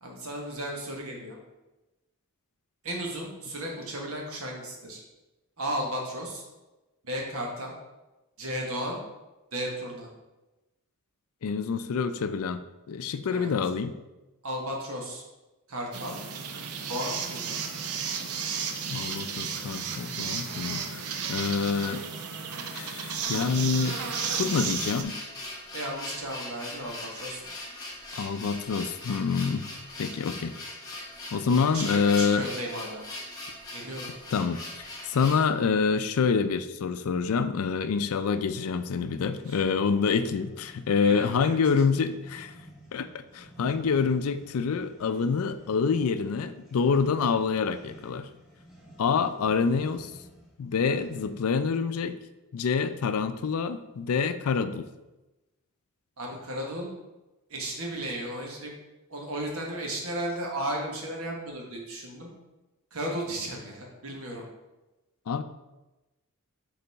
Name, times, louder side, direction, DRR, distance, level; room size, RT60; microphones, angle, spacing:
voice 1, 0.0-1.4 2.8-5.0 5.6-6.4 7.0-7.7 8.4-9.0 9.5-10.1 13.3-13.5 14.4-15.2 15.7-16.2 16.9-17.6 25.7-27.4 31.7-33.0 33.7-34.1 39.5-39.6 41.0-41.5 56.2-56.9 57.5-58.7 59.1-62.3 62.9-64.5, right 1 dB, 70° right, 0 dB, 1.3 m, -34 dB
voice 2, 11.4-13.9 18.9-22.1 22.7-24.0 24.3-25.2 28.1-29.7 30.0-30.6 31.3-32.5 34.3-42.5 42.9-48.3 49.0-50.1 50.6-52.2 52.5-54.9 65.3-65.4, left 5 dB, 70° left, 11 dB, 0.4 m, -27 dB
sound 1, 15.9-25.0, right 6 dB, 90° right, 0.6 m, -33 dB
sound 2, 23.3-35.5, left 1 dB, 15° left, 1.3 m, -40 dB
sound 3, 37.8-51.5, equal, 5° right, 1.3 m, -52 dB
6.8 x 4.0 x 3.4 m, 1.1 s
head